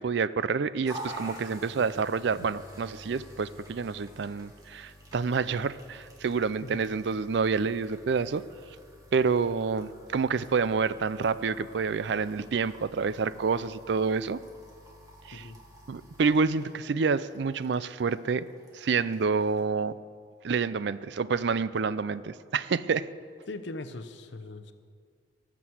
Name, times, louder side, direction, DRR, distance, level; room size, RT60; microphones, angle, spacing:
voice 1, 0.0-8.4 9.1-14.4 15.3-15.5 15.9-18.5 18.7-19.9 20.4-23.1, right 5 dB, 60° right, 16 dB, 0.4 m, -28 dB
sound 1, 0.8-19.6, right 1 dB, 20° right, 2.0 m, -49 dB
voice 2, 6.6-7.0 15.3-15.6 23.5-24.7, left 2 dB, 65° left, 10 dB, 0.8 m, -40 dB
18.5 x 6.2 x 7.8 m, 2.1 s
head